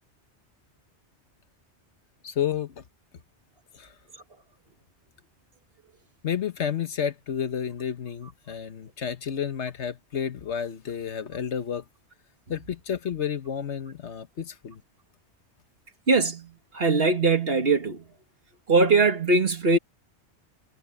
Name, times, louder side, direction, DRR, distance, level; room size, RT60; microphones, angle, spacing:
voice 1, 2.2-2.8 3.7-3.9 6.2-11.8 12.5-14.8, left 8 dB, 75° left, 1.4 m, -31 dB
voice 2, 16.1-18.0 18.7-19.8, right 3 dB, 60° right, 2.1 m, -21 dB
omnidirectional pair, 1.2 m